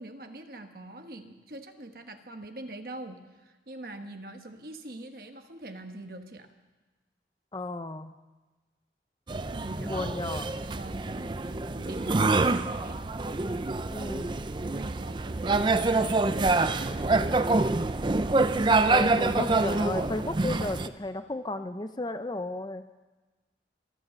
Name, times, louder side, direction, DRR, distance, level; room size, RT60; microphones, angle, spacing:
voice 1, 0.0-6.5 9.5-10.1 10.7-13.0 14.6-17.4, right 1 dB, 55° right, 6 dB, 1.3 m, -43 dB
voice 2, 7.5-8.1 9.8-10.5 13.9-14.4 18.9-22.9, left 2 dB, 25° left, 10 dB, 0.5 m, -34 dB
sound 1, 9.3-20.9, right 3 dB, 25° right, 0.4 m, -26 dB
24.5 x 8.4 x 6.9 m, 1.2 s
head